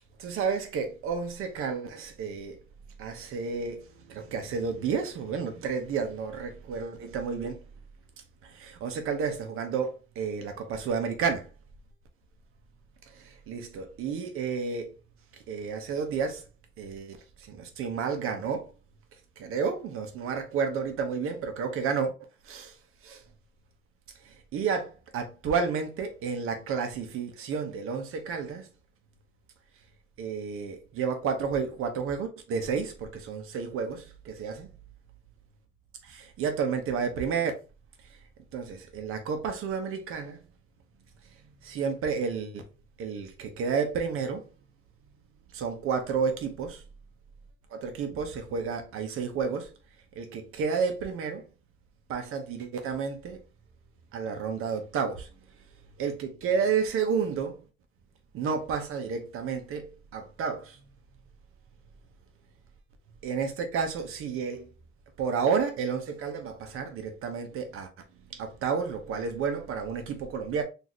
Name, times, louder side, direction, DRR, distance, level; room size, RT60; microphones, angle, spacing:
voice 1, 0.2-2.6 3.0-7.6 8.4-11.5 13.1-14.9 15.5-16.4 16.8-18.7 19.4-22.1 22.4-22.7 23.0-23.2 24.2-28.7 30.2-34.7 36.1-37.5 38.5-40.4 41.6-42.6 43.0-44.4 45.5-46.8 47.7-49.7 50.1-51.5 52.1-53.4 54.1-55.3 56.0-57.6 58.3-60.8 63.2-64.7 65.2-67.9 68.3-70.6, right 6 dB, 90° right, 0.9 m, -31 dB
4.0 x 2.8 x 3.1 m
cardioid pair, 170°, 21 cm